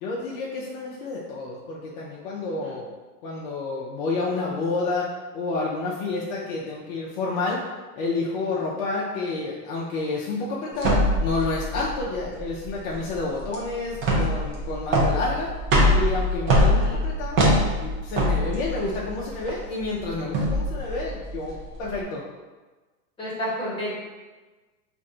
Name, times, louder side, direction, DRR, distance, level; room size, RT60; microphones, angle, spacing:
voice 1, 0.0-2.9 3.2-5.1 5.3-7.6 8.0-15.5 15.9-17.4 17.7-22.2, left 3 dB, 40° left, -5 dB, 0.5 m, -29 dB
sound 1, 10.8-22.0, equal, 25° right, 0.6 m, -23 dB
voice 2, 16.7-17.0 23.2-24.0, equal, 10° left, -9 dB, 1.1 m, -31 dB
2.6 x 2.5 x 4.2 m, 1.3 s
hypercardioid pair, 135°, 47 cm